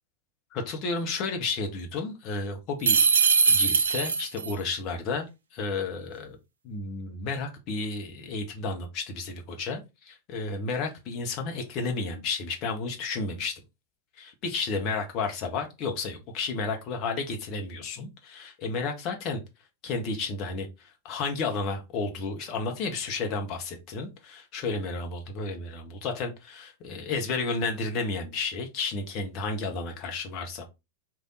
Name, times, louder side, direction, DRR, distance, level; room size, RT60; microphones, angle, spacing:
voice 1, 0.5-3.0 3.5-6.4 6.6-13.5 14.2-19.4 19.8-30.7, left 4 dB, 40° left, 1.1 m, -32 dB
sound 1, 2.8-4.5, right 5 dB, 70° right, 0.5 m, -21 dB
3.5 x 2.7 x 3.9 m
figure-of-eight pair, 90°, 0 cm